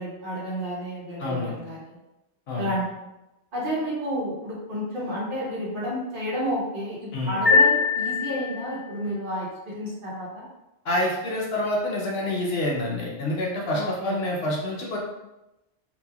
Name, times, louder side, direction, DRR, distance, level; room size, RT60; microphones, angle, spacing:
voice 1, 0.0-2.0 2.5-2.9 3.5-10.4 13.7-14.2, equal, 50° right, -6 dB, 1.0 m, -31 dB
voice 2, 1.2-1.5 2.5-2.7 7.1-7.4 10.8-15.0, left 1 dB, 65° left, -3 dB, 0.8 m, -27 dB
sound 1, 7.5-8.9, left 4 dB, 10° left, 0.9 m, -21 dB
2.9 x 2.6 x 2.3 m, 0.96 s
omnidirectional pair, 1.2 m